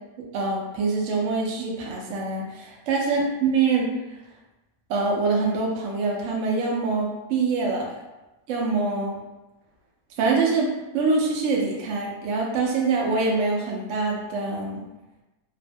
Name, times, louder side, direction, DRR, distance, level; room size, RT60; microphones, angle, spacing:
voice 1, 0.3-3.9 4.9-8.0 8.5-9.2 10.2-14.8, right 4 dB, 75° right, -1 dB, 0.6 m, -24 dB
3.0 x 2.1 x 2.5 m, 1.1 s
omnidirectional pair, 1.9 m